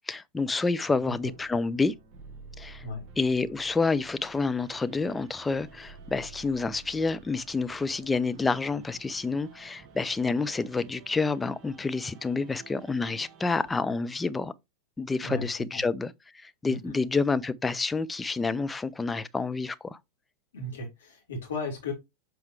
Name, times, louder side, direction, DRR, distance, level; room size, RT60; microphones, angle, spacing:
voice 1, 0.1-1.9 2.6-2.8 3.2-14.5 15.0-20.0, left 4 dB, 10° left, 0.4 m, -28 dB
sound 1, 0.9-13.8, right 4 dB, 35° right, 1.1 m, -51 dB
voice 2, 16.7-17.0 20.5-21.9, left 2 dB, 65° left, 3.2 m, -35 dB
7.3 x 4.5 x 3.2 m
figure-of-eight pair, 90°, 0 cm